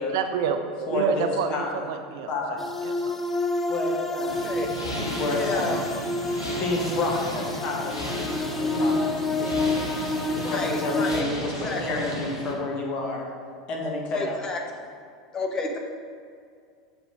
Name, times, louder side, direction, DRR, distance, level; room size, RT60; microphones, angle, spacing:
voice 1, 0.1-3.1, right 6 dB, 55° right, 7 dB, 0.5 m, -28 dB
voice 2, 0.9-2.6 3.7-4.5 4.8-5.9 6.5-9.9 10.3-13.3 13.7-14.4, left 2 dB, 40° left, -1 dB, 1.4 m, -30 dB
sound 1, 2.6-11.2, left 2 dB, 10° left, 0.4 m, -29 dB
sound 2, 4.3-12.5, equal, 85° left, 1.3 m, -34 dB
voice 3, 5.2-5.8 10.4-11.2 11.6-11.8 14.1-14.6 15.3-15.8, left 3 dB, 25° left, 2 dB, 0.9 m, -30 dB
6.8 x 4.0 x 5.2 m, 2.2 s
figure-of-eight pair, 80°, 2 cm